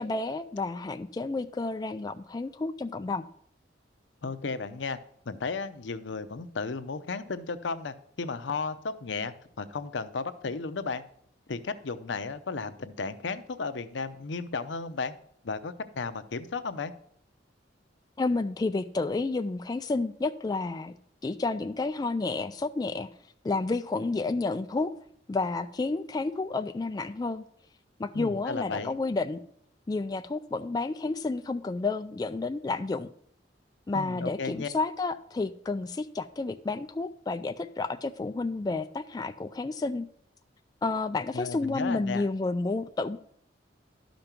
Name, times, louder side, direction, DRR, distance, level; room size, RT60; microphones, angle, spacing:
voice 1, 0.0-3.3 18.2-20.9 21.2-23.1 23.4-24.9 25.3-27.4 28.0-29.4 29.9-33.1 33.9-40.1 40.8-43.2, left 3 dB, 20° left, 8 dB, 0.3 m, -30 dB
voice 2, 4.2-5.0 5.3-8.8 9.0-11.0 11.5-15.1 15.4-16.9 28.1-29.0 33.9-34.7 41.3-42.2, left 4 dB, 80° left, 11 dB, 0.7 m, -34 dB
12.0 x 5.2 x 5.9 m, 0.67 s
head